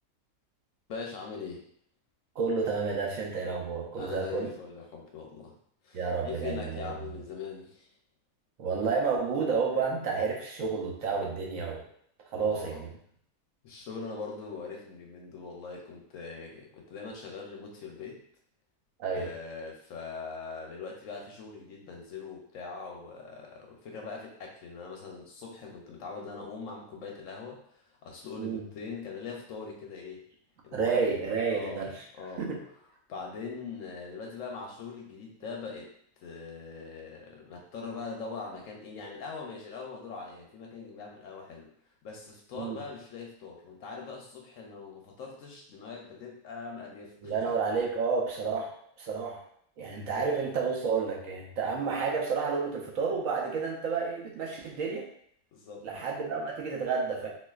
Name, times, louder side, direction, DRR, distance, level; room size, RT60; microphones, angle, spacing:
voice 1, 0.9-1.6 4.0-5.6 5.8-7.9 12.4-12.8 13.6-18.2 19.2-30.2 30.6-31.8 32.1-32.5 33.1-35.9 36.2-41.7 42.0-47.5 50.1-50.2 55.5-55.9, left 5 dB, 70° left, 0 dB, 0.9 m, -42 dB
voice 2, 2.4-4.5 5.9-6.9 8.6-11.8 12.3-12.9 19.0-19.4 28.4-28.6 30.7-32.0 32.4-32.6 42.5-42.8 47.2-48.7 49.0-49.4 49.8-55.1 55.8-57.3, right 5 dB, 70° right, -1 dB, 1.0 m, -30 dB
4.0 x 2.4 x 2.3 m, 0.66 s
omnidirectional pair, 1.6 m